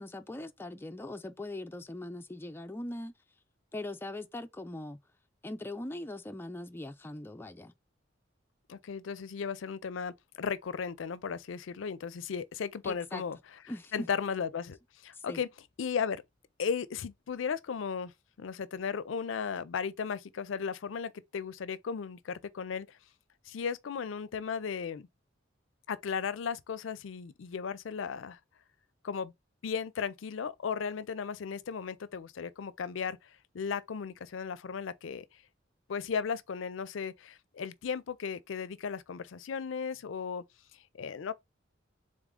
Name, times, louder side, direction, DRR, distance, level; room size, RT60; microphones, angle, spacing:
voice 1, 0.0-3.1 3.7-5.0 5.4-7.7 12.8-13.2 13.7-14.1 15.1-15.4, left 1 dB, 10° left, 0.4 m, -41 dB
voice 2, 8.7-13.4 13.9-14.8 15.0-15.5 15.8-16.2 16.6-18.1 18.4-23.0 23.5-25.1 25.9-28.4 29.0-29.3 29.6-35.2 35.9-40.4 41.0-41.3, left 6 dB, 75° left, 0.4 m, -35 dB
3.8 x 3.6 x 3.6 m
head